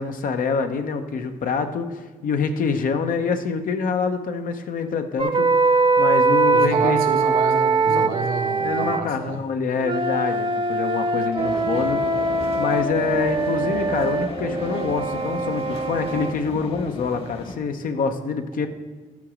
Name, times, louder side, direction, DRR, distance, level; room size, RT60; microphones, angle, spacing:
voice 1, 0.0-7.1 7.9-8.1 8.6-12.0 12.6-18.7, left 5 dB, 75° left, 7 dB, 0.8 m, -26 dB
sound 1, 5.2-9.0 9.8-16.3, right 3 dB, 35° right, 0.8 m, -22 dB
voice 2, 6.5-9.4, right 4 dB, 85° right, 2 dB, 1.3 m, -29 dB
sound 2, 11.4-17.6, left 2 dB, 40° left, 1.2 m, -35 dB
12.0 x 5.0 x 6.3 m, 1.3 s
cardioid pair, 85°, 14 cm